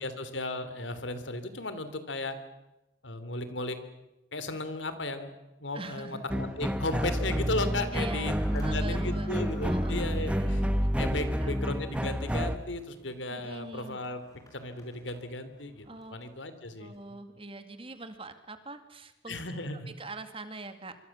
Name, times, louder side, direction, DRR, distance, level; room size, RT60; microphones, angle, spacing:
voice 1, 0.0-2.4 3.0-3.8 4.3-5.3 5.6-10.7 11.0-14.2 14.5-16.9 19.3-19.9, left 2 dB, 90° left, 11 dB, 3.0 m, -35 dB
voice 2, 5.7-6.2 7.9-9.3 9.6-10.6 11.1-11.5 13.3-14.0 15.8-16.2 16.8-19.4 19.9-21.0, right 2 dB, 30° right, 9 dB, 2.2 m, -43 dB
sound 1, 5.8-17.0, equal, 20° left, 6.1 m, -53 dB
sound 2, 6.3-12.6, equal, 5° right, 1.1 m, -29 dB
25.5 x 24.0 x 7.2 m, 0.95 s
head